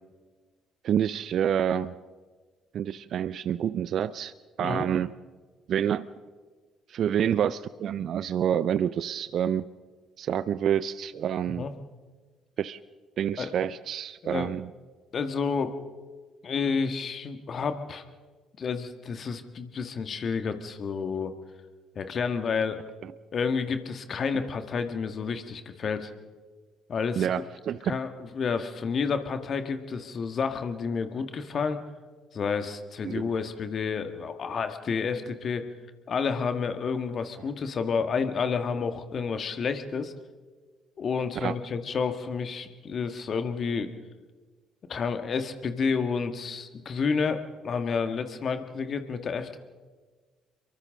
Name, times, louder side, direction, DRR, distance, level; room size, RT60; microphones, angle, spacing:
voice 1, 0.8-2.0 2.7-4.3 4.6-5.1 5.7-6.1 6.9-9.6 10.2-11.7 12.6-12.8 13.2-14.7 27.2-27.9 33.0-33.3 41.4-41.5, right 9 dB, 55° right, 17 dB, 0.5 m, -28 dB
voice 2, 15.1-15.7 16.4-18.0 18.6-21.3 22.0-22.8 23.3-26.1 26.9-27.3 27.9-31.8 32.3-35.6 36.1-40.1 41.0-43.9 44.9-49.6, left 5 dB, 45° left, 8 dB, 1.8 m, -30 dB
29.0 x 23.5 x 3.8 m, 1.4 s
hypercardioid pair, 50°, 0 cm